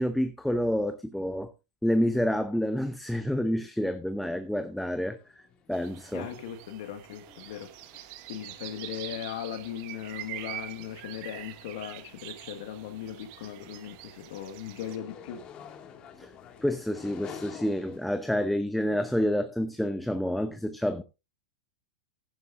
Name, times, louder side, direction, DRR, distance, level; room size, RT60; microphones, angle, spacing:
voice 1, 0.0-1.5 1.8-5.2 5.7-6.3 16.2-16.3 16.6-21.0, equal, ahead, 0.8 m, -28 dB
sound 1, 3.8-4.1 4.3-18.2, left 7 dB, 35° left, 2.1 m, -51 dB
sound 2, 5.7-15.0, right 15 dB, 50° right, 1.1 m, -44 dB
voice 2, 6.1-8.0 8.3-15.5, left 10 dB, 60° left, 1.8 m, -38 dB
15.0 x 11.5 x 2.6 m
hypercardioid pair, 100°, 3 cm